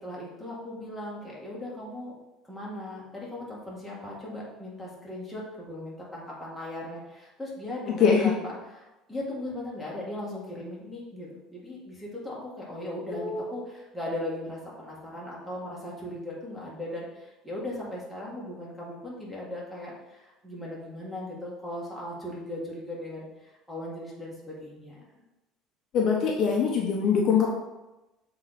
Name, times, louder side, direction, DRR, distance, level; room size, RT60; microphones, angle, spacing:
voice 1, 0.0-2.1 2.4-25.2, left 1 dB, ahead, -6 dB, 1.8 m, -38 dB
voice 2, 8.0-8.3 13.1-13.4 25.9-27.5, left 6 dB, 45° left, -1 dB, 0.8 m, -23 dB
7.1 x 3.9 x 4.1 m, 1.0 s
cardioid pair, 155°, 0 cm